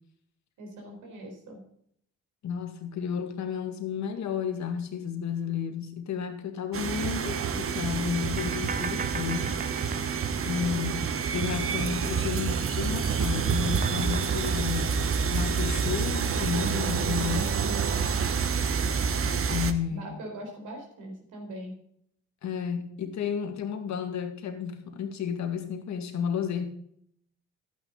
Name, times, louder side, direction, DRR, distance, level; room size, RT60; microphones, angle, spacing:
voice 1, 0.6-1.6 19.9-21.8, right 1 dB, 85° right, 2 dB, 4.4 m, -41 dB
voice 2, 2.4-9.5 10.4-15.0 15.3-17.8 19.5-20.2 22.4-26.6, left 7 dB, 65° left, 6 dB, 2.0 m, -32 dB
sound 1, 6.7-19.7, right 6 dB, 45° right, 1.1 m, -28 dB
sound 2, 8.4-11.8 12.1-16.1, right 5 dB, 30° right, 0.6 m, -41 dB
11.5 x 9.2 x 3.9 m, 0.68 s
cardioid pair, 90°, 30 cm